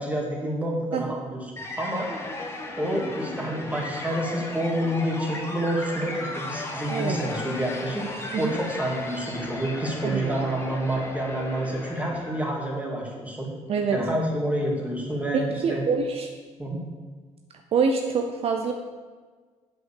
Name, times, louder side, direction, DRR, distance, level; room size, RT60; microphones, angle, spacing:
voice 1, 0.0-1.5 1.8-2.1 2.8-8.1 8.4-13.5 13.9-15.8 16.6-16.8, right 1 dB, 10° right, -2 dB, 2.2 m, -28 dB
sound 1, 1.6-12.7, left 2 dB, 20° left, 1.5 m, -35 dB
voice 2, 6.9-7.2 8.3-8.5 10.0-10.6 13.7-14.0 15.3-16.3 17.7-18.7, right 5 dB, 55° right, 4 dB, 0.7 m, -26 dB
7.7 x 5.5 x 6.8 m, 1.5 s
cardioid pair, 95°, 12 cm